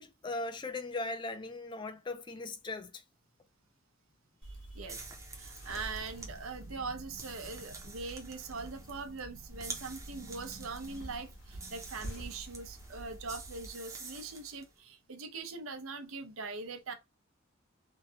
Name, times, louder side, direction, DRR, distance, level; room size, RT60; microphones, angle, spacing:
voice 1, 0.0-3.0, left 2 dB, 20° left, 0.3 m, -39 dB
sound 1, 4.4-13.7, right 1 dB, 60° left, 1.1 m, -48 dB
voice 2, 4.4-5.0 5.3-16.9, right 4 dB, 90° right, 0.7 m, -42 dB
sound 2, 4.8-14.7, right 3 dB, 15° right, 0.6 m, -49 dB
3.1 x 2.2 x 2.7 m
head